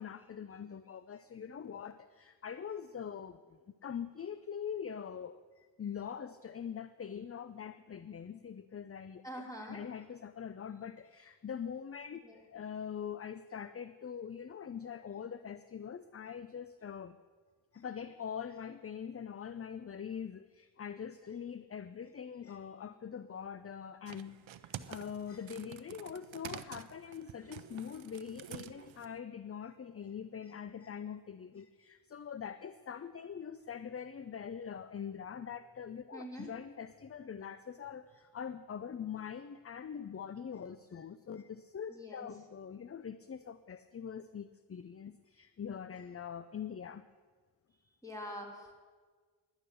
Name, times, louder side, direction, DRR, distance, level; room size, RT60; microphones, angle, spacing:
voice 1, 0.0-9.2 9.6-17.2 17.7-24.4 24.6-47.0, left 7 dB, 30° left, 13 dB, 0.5 m, -43 dB
voice 2, 9.2-9.8 12.2-12.4 36.1-36.5 41.9-42.3 48.0-48.8, equal, 5° left, -1 dB, 3.5 m, -45 dB
sound 1, 24.1-29.2, right 10 dB, 75° right, 0.6 m, -49 dB
11.0 x 10.0 x 6.9 m, 1.5 s
cardioid pair, 45°, 46 cm